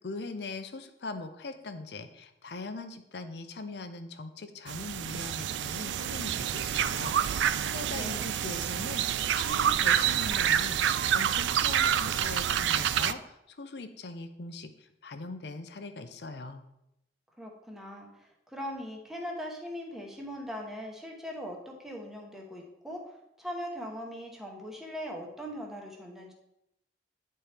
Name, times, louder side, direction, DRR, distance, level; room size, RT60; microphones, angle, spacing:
voice 1, 0.0-16.6, left 3 dB, 65° left, 8 dB, 0.6 m, -41 dB
sound 1, 4.7-13.1, right 9 dB, 85° right, 0.3 m, -28 dB
voice 2, 7.9-8.4 17.4-26.3, equal, ahead, -1 dB, 1.0 m, -40 dB
9.5 x 4.3 x 3.4 m, 0.84 s
head